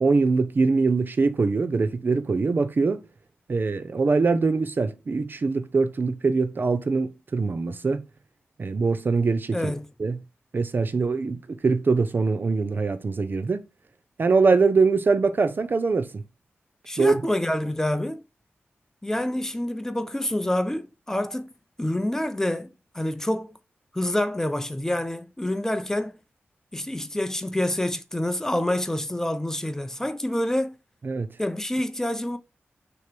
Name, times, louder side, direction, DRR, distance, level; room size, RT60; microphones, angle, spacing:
voice 1, 0.0-3.0 3.5-8.0 8.6-9.7 10.0-10.2 10.5-13.6 14.2-16.2 17.0-17.2 31.0-31.3, right 4 dB, 50° right, 0.6 m, -23 dB
voice 2, 9.5-9.9 16.9-18.2 19.0-21.5 21.8-22.7 22.9-23.6 23.9-26.2 26.7-30.8 31.4-32.4, left 1 dB, 10° left, 0.6 m, -27 dB
6.3 x 3.0 x 5.1 m
wide cardioid pair, 90°, 4 cm